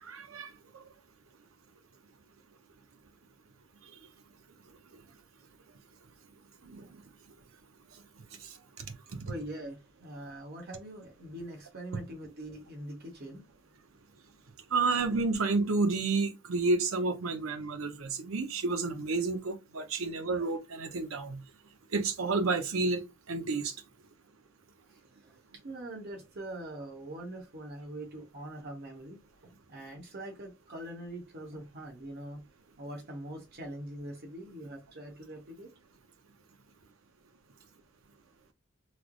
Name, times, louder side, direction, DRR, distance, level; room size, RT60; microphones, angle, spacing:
voice 1, 0.0-0.5 6.6-7.0 8.4-8.9 9.1-9.3 14.7-21.4 21.9-23.8, right 3 dB, 85° right, 0.7 m, -30 dB
voice 2, 9.2-13.5 24.9-32.4 32.8-35.7, right 1 dB, 50° right, 1.0 m, -43 dB
3.2 x 2.0 x 3.7 m
head